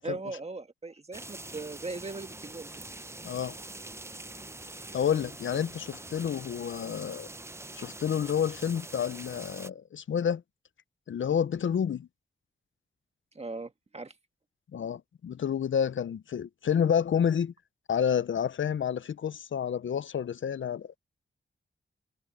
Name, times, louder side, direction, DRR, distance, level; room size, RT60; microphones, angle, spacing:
voice 1, 0.0-2.7 13.3-14.1, right 3 dB, 30° right, 1.5 m, -39 dB
sound 1, 1.1-9.7, right 2 dB, 15° right, 0.5 m, -44 dB
voice 2, 3.2-3.6 4.9-7.3 7.7-10.4 11.1-12.1 14.7-17.5 17.9-20.9, left 8 dB, 75° left, 0.6 m, -29 dB
wide cardioid pair, 120°, 20 cm